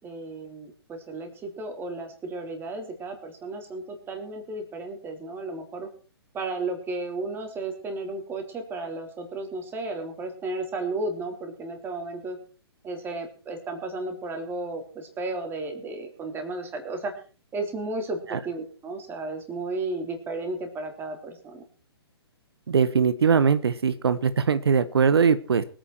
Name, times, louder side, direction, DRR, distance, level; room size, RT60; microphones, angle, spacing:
voice 1, 0.0-5.9 6.3-12.4 12.8-17.1 17.5-21.6, right 2 dB, 15° right, 4 dB, 3.3 m, -33 dB
voice 2, 22.7-25.6, right 6 dB, 70° right, 13 dB, 1.0 m, -21 dB
23.0 x 9.1 x 4.6 m, 0.39 s
figure-of-eight pair, 125°, 14 cm